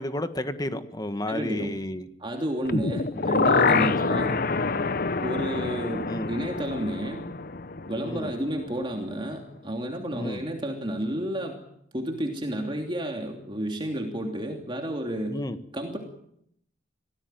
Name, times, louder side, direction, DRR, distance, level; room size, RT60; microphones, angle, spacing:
voice 1, 0.0-2.1 3.1-3.3 3.7-3.9 6.1-6.3 8.0-8.3 10.1-10.4 15.3-15.6, left 1 dB, 20° left, 9 dB, 1.5 m, -32 dB
voice 2, 1.3-1.8 2.2-4.4 5.2-7.3 7.9-11.6 11.9-15.4 15.7-16.0, right 1 dB, 25° right, 2 dB, 3.0 m, -31 dB
sound 1, 2.6-8.7 9.0-9.1, left 4 dB, 50° left, 1.0 m, -26 dB
26.0 x 18.0 x 9.2 m, 0.74 s
head